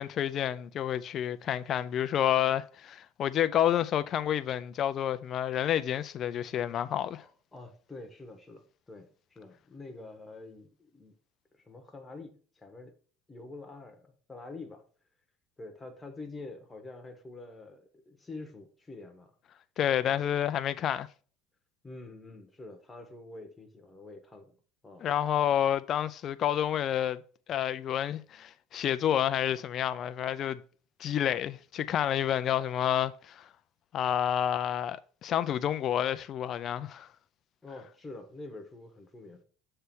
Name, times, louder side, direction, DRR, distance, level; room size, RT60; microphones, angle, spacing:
voice 1, 0.0-7.2 19.8-21.1 25.0-27.2 27.5-30.6 31.0-33.5 33.9-37.1, left 10 dB, 35° left, 0.4 m, -29 dB
voice 2, 7.2-11.1 11.5-13.0 13.3-14.8 15.6-19.3 20.0-20.3 21.8-24.6 24.8-25.1 37.6-39.4, left 2 dB, 10° left, 1.1 m, -46 dB
6.8 x 3.3 x 6.1 m
cardioid pair, 155°, 0 cm